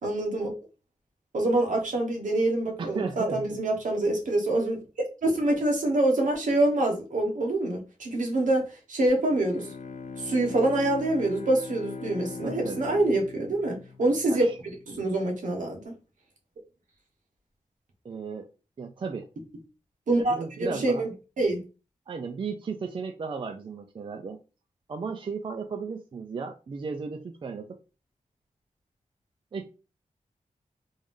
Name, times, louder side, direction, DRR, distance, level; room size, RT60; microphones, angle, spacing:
voice 1, 0.0-0.5 1.3-4.8 5.2-9.7 10.2-14.5 14.9-15.9 20.1-21.1 21.4-21.6, right 2 dB, 80° right, 2 dB, 1.1 m, -25 dB
voice 2, 2.8-3.4 12.4-12.8 14.3-14.5 18.0-18.5 18.8-19.3 20.2-21.1 22.1-24.4 24.9-27.8 29.5-29.7, right 5 dB, 40° right, 5 dB, 0.4 m, -35 dB
Bowed string instrument, 9.2-14.8, left 4 dB, 70° left, 0.5 m, -40 dB
3.5 x 2.6 x 3.6 m, 0.32 s
wide cardioid pair, 160°, 13 cm